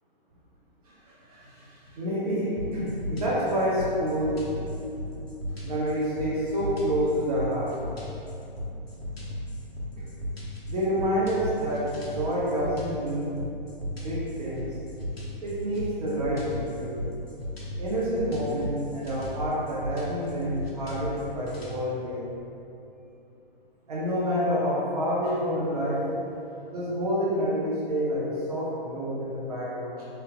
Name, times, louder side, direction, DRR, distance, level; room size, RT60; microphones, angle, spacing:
voice 1, 0.9-4.5 5.6-7.7 9.2-9.3 10.0-10.1 10.7-13.3 13.9-14.8 15.4-17.0 17.8-22.2 23.9-26.1 26.7-30.1, equal, 40° right, -7 dB, 0.6 m, -28 dB
sound 1, 2.6-21.8, left 1 dB, 90° left, 0.7 m, -36 dB
3.3 x 2.7 x 2.4 m, 2.8 s
figure-of-eight pair, 120°, 30 cm